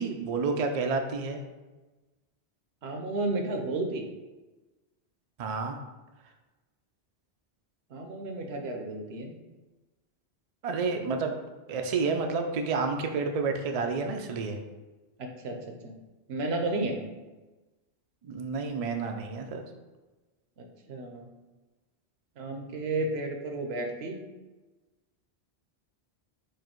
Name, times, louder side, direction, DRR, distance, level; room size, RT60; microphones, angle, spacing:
voice 1, 0.0-1.4 5.4-5.8 10.6-11.3 11.7-14.6 18.2-19.6, right 4 dB, 55° right, 4 dB, 0.4 m, -30 dB
voice 2, 2.8-4.0 7.9-9.3 15.2-15.6 15.8-16.0 16.3-16.9 20.6-21.3 22.4-24.2, right 2 dB, 75° right, 3 dB, 0.9 m, -32 dB
4.7 x 2.6 x 4.3 m, 1.2 s
omnidirectional pair, 1.1 m